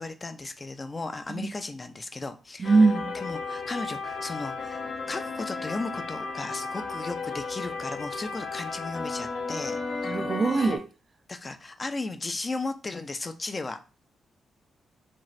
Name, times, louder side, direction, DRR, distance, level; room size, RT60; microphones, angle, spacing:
voice 1, 0.0-2.8 3.1-9.8 11.3-13.8, left 3 dB, 35° left, 0.4 m, -35 dB
sound 1, 2.6-10.8, left 4 dB, 70° left, 0.7 m, -34 dB
voice 2, 2.6-3.2 10.0-10.9, right 3 dB, 45° right, 0.3 m, -22 dB
2.5 x 2.3 x 3.1 m
supercardioid pair, 55°, 0 cm